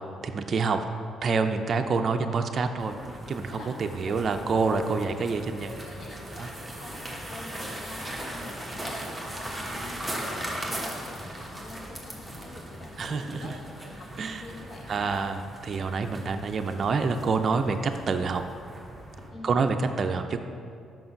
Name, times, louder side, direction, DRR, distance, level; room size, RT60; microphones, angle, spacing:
voice 1, 0.2-0.8 1.2-2.9 3.3-5.7 6.4-6.5 13.0-13.5 14.2-14.4 14.9-18.4 19.4-20.4, right 4 dB, 50° right, 6 dB, 0.4 m, -27 dB
sound 1, 2.8-19.3, right 1 dB, ahead, 1.3 m, -39 dB
voice 2, 4.6-5.1 5.5-15.1 19.3-19.6, left 2 dB, 60° left, 0 dB, 1.1 m, -46 dB
5.5 x 5.2 x 5.6 m, 2.4 s
cardioid pair, 90°, 0 cm